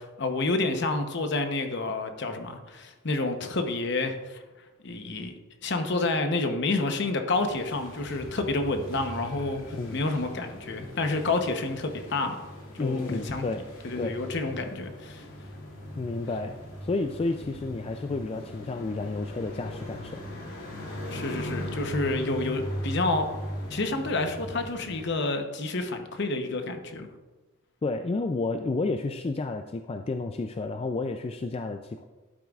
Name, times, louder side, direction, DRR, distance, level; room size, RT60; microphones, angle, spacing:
voice 1, 0.0-4.4 4.8-5.3 5.6-12.4 12.8-13.4 13.8-15.3 21.1-23.3 23.7-27.1, left 2 dB, 60° left, 6 dB, 0.9 m, -29 dB
sound 1, 7.4-25.0, left 1 dB, 80° left, 2.7 m, -39 dB
voice 2, 12.8-13.6 14.0-14.1 16.0-20.2 27.8-32.0, left 3 dB, 30° left, 6 dB, 0.3 m, -31 dB
11.5 x 8.7 x 2.4 m, 1.2 s
head